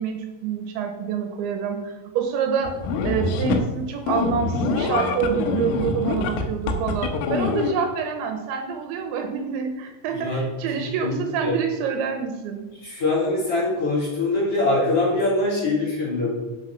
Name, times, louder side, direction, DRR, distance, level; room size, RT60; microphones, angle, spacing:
voice 1, 0.0-2.8 3.0-12.7, right 6 dB, 75° right, 5 dB, 3.0 m, -27 dB
sound 1, 2.6-3.7 4.1-7.7, left 4 dB, 90° left, 3.8 m, -25 dB
voice 2, 10.1-10.4 10.7-11.5 12.8-16.4, left 2 dB, 35° left, -6 dB, 3.7 m, -23 dB
10.5 x 7.5 x 5.7 m, 1.1 s
omnidirectional pair, 5.7 m